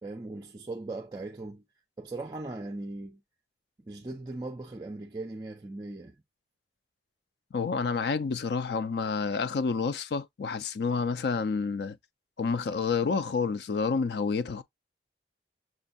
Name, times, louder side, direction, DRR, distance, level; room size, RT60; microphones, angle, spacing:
voice 1, 0.0-1.6 2.0-3.2 3.9-6.2, right 2 dB, 20° right, 0.4 m, -39 dB
voice 2, 7.5-12.0 12.4-14.6, left 5 dB, 65° left, 0.4 m, -29 dB
6.1 x 2.3 x 2.5 m
head